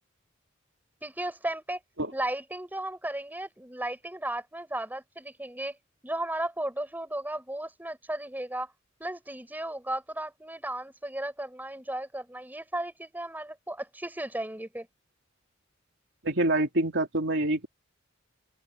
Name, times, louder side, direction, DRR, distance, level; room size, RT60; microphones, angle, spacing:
voice 1, 1.0-1.8 2.1-5.8 6.0-8.7 9.0-14.9, right 1 dB, 10° right, 5.7 m, -35 dB
voice 2, 16.2-17.7, right 2 dB, 60° right, 3.2 m, -26 dB
open air
head